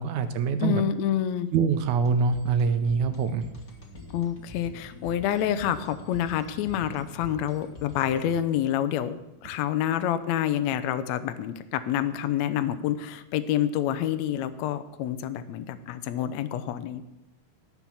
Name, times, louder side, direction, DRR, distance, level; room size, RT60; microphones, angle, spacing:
voice 1, 0.0-0.8 1.5-3.5, right 5 dB, 80° right, 9 dB, 1.8 m, -24 dB
voice 2, 0.6-1.5 4.1-17.1, left 10 dB, 80° left, 10 dB, 1.6 m, -28 dB
sound 1, 2.0-8.6, left 1 dB, 30° left, 1.7 m, -46 dB
18.0 x 6.1 x 7.2 m, 0.95 s
omnidirectional pair, 4.0 m